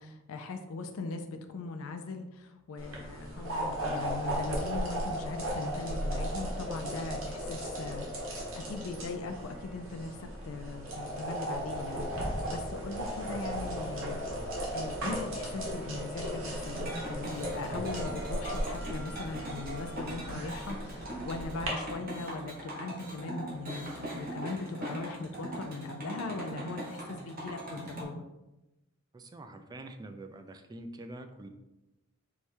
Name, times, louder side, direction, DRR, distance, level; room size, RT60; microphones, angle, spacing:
voice 1, 0.0-14.3 14.7-28.2, left 3 dB, 80° left, 6 dB, 0.4 m, -40 dB
sound 1, 2.8-21.7, equal, 75° right, 1.3 m, -36 dB
sound 2, 16.5-28.0, right 1 dB, 45° right, 1.1 m, -40 dB
voice 2, 29.1-31.5, right 1 dB, 20° right, 6 dB, 0.3 m, -45 dB
4.7 x 2.3 x 4.3 m, 0.99 s
head